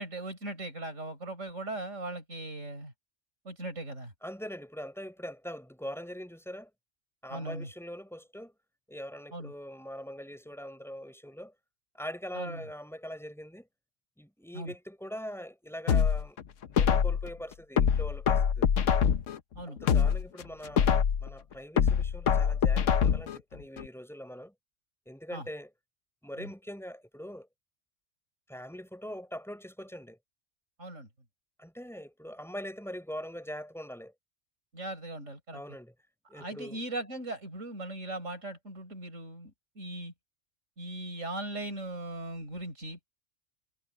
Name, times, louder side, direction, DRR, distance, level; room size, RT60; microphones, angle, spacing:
voice 1, 0.0-2.9 3.4-4.1 7.3-7.7 9.3-9.5 12.3-12.6 14.5-14.7 19.5-19.8 25.3-25.5 26.4-26.5 30.8-31.1 34.7-35.6 36.3-40.1 40.8-43.1, right 2 dB, 90° right, 6.2 m, -39 dB
voice 2, 4.2-6.7 7.2-8.5 8.9-11.5 11.9-13.7 14.2-16.4 16.7-18.7 19.7-20.9 21.2-24.5 25.1-25.7 26.2-27.5 28.5-30.2 31.6-34.1 35.5-35.9 36.3-36.8, equal, ahead, 5.6 m, -42 dB
sound 1, 15.9-17.3 17.8-19.4 19.8-21.3 21.8-23.4 23.8-23.9, left 7 dB, 80° left, 1.2 m, -25 dB
omnidirectional pair, 1.3 m